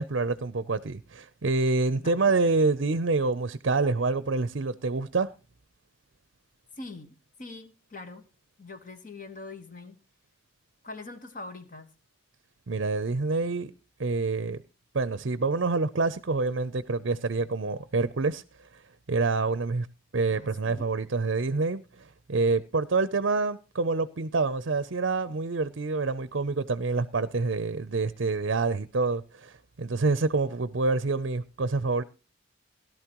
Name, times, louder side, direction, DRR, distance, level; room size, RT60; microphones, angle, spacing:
voice 1, 0.0-5.3 12.7-13.7 14.0-14.6 14.9-18.4 18.7-18.8 19.1-19.9 20.1-32.0, right 3 dB, 65° right, 0.6 m, -27 dB
voice 2, 1.9-2.3 6.8-8.3 8.6-10.0 10.8-11.9 20.3-20.9, left 3 dB, 40° left, 1.3 m, -43 dB
17.0 x 12.0 x 3.0 m
head